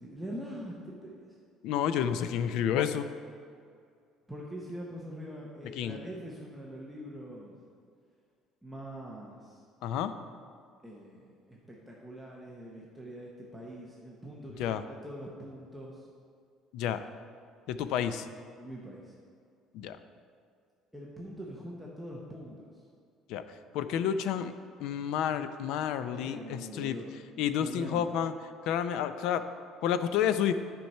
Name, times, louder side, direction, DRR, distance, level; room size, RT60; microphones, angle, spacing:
voice 1, 0.0-1.4 4.3-7.6 8.6-9.6 10.8-16.1 18.6-19.1 20.9-22.8 26.1-28.1, equal, ahead, -4 dB, 0.8 m, -43 dB
voice 2, 1.6-3.1 5.8-6.0 9.8-10.1 14.6-14.8 16.7-17.0 17.7-18.3 19.7-20.0 23.3-23.4 23.7-24.5 24.8-27.0 27.4-28.3 28.7-29.4 29.8-30.5, left 9 dB, 65° left, 11 dB, 0.4 m, -30 dB
10.5 x 4.5 x 5.4 m, 2.2 s
cardioid pair, 165°, 0 cm